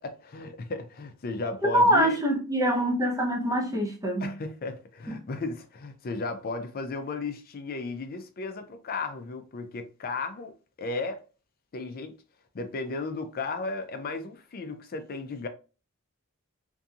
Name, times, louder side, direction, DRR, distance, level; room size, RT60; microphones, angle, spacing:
voice 1, 0.0-2.2 4.2-11.2 11.7-12.2 12.5-15.5, left 3 dB, 45° left, 0.5 m, -35 dB
voice 2, 1.6-4.3, equal, 15° right, 0.7 m, -24 dB
2.7 x 2.7 x 2.3 m
head